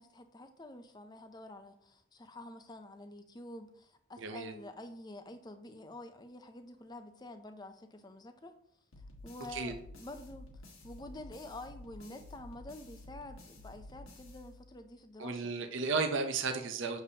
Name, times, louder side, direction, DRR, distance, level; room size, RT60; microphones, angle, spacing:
voice 1, 0.0-8.5 9.2-10.5 10.8-15.5, left 1 dB, 20° left, 8 dB, 0.5 m, -48 dB
voice 2, 4.2-4.5 9.5-9.7 15.2-17.0, right 4 dB, 60° right, 5 dB, 0.6 m, -34 dB
sound 1, 8.9-15.0, left 2 dB, 75° left, 1.4 m, -52 dB
6.9 x 6.7 x 2.8 m, 0.69 s
head